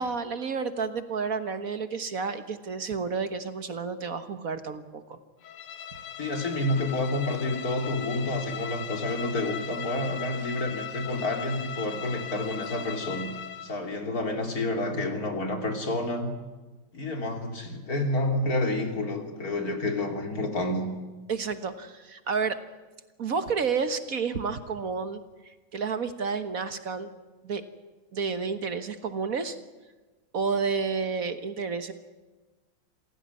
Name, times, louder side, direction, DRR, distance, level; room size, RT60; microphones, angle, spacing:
voice 1, 0.0-5.2 21.3-22.6 23.2-25.2 25.7-27.1 27.4-27.6 28.1-29.6 30.3-31.9, right 5 dB, 45° right, 10 dB, 1.5 m, -30 dB
Bowed string instrument, 5.4-13.8, left 9 dB, 80° left, 2.1 m, -38 dB
voice 2, 6.2-13.3 13.6-16.3 16.9-20.9, left 2 dB, 40° left, 4 dB, 3.6 m, -29 dB
27.0 x 16.5 x 9.7 m, 1.2 s
omnidirectional pair, 2.3 m